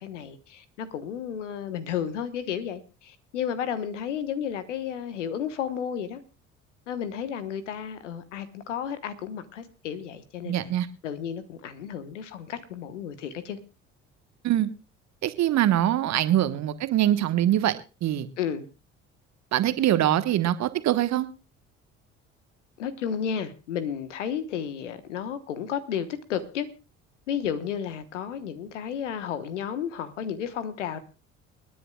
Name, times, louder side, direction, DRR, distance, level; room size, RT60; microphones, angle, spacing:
voice 1, 0.0-6.2 6.9-10.7 11.0-13.6 18.4-18.7 22.8-26.7 27.3-31.0, left 8 dB, 80° left, 13 dB, 1.2 m, -32 dB
voice 2, 10.4-10.9 14.4-14.7 15.2-18.3 19.5-21.3, right 12 dB, 50° right, 12 dB, 1.3 m, -23 dB
29.0 x 10.0 x 2.3 m, 0.31 s
figure-of-eight pair, 55°, 36 cm